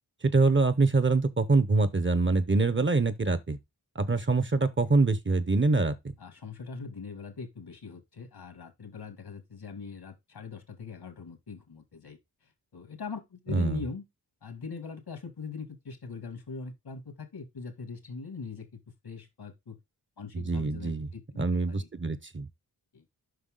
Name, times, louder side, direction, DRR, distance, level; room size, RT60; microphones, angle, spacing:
voice 1, 0.2-3.6 3.9-6.1 13.5-13.8 20.3-21.1 21.4-22.5, right 3 dB, 30° right, 0.8 m, -25 dB
voice 2, 6.2-12.2 12.7-14.0 14.4-19.8 20.2-21.9 22.9-23.0, left 5 dB, 85° left, 2.5 m, -41 dB
7.8 x 5.7 x 3.8 m
wide cardioid pair, 85°, 38 cm